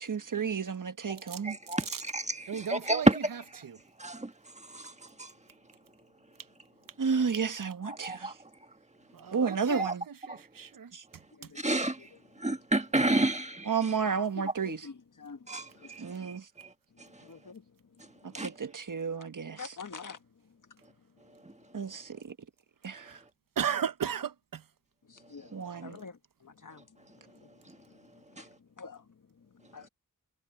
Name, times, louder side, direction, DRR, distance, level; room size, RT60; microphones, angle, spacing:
voice 1, 0.0-1.6 7.0-8.4 9.3-10.0 10.9-11.0 13.6-14.9 16.0-16.5 18.2-19.7 21.7-22.4 22.8-23.2 25.5-26.0, right 6 dB, 70° right, 1.3 m, -32 dB
voice 2, 1.4-3.2 4.0-4.3 4.7-4.9 5.2-5.3 7.9-8.3 9.8-9.9 10.3-10.4 11.5-12.1 12.4-13.7 15.5-16.1 18.3-18.5 28.4-28.5, right 2 dB, 20° right, 1.7 m, -29 dB
voice 3, 2.5-3.8 9.1-9.9 10.3-10.9 23.0-23.2 23.6-24.6, right 8 dB, 85° right, 0.7 m, -35 dB
voice 4, 11.3-12.1 14.3-16.3 16.9-17.6 18.0-18.4 19.6-20.2 20.4-20.8 25.1-25.5 25.8-29.9, left 4 dB, 70° left, 1.6 m, -49 dB
wide cardioid pair, 70°, 33 cm